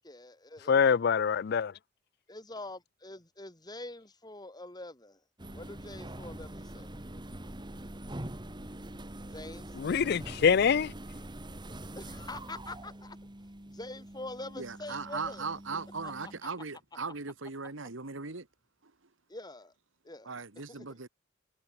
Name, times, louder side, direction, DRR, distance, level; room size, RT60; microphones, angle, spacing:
voice 1, 0.0-1.0 2.3-5.2 5.5-7.0 9.3-9.8 12.0-13.2 13.6-16.3 17.6-17.7 19.3-19.7 20.0-20.4 20.7-20.9, left 2 dB, 20° left, 5.3 m, -45 dB
voice 2, 0.7-1.7 9.8-10.9, left 6 dB, 55° left, 0.4 m, -24 dB
sound 1, 5.4-16.4, right 1 dB, 25° right, 2.0 m, -44 dB
voice 3, 14.6-18.5 18.8-18.9 20.3-21.1, right 4 dB, 85° right, 1.8 m, -38 dB
head